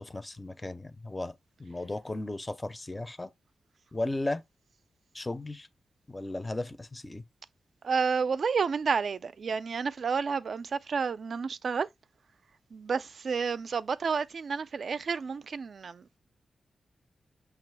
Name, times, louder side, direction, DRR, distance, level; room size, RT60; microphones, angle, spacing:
voice 1, 0.0-1.3 1.6-3.3 3.9-4.4 5.1-5.7 6.1-7.2, left 2 dB, 20° left, 0.5 m, -35 dB
voice 2, 7.8-11.9 12.7-16.2, right 5 dB, 60° right, 0.3 m, -30 dB
5.9 x 2.4 x 3.3 m
wide cardioid pair, 95°, 0 cm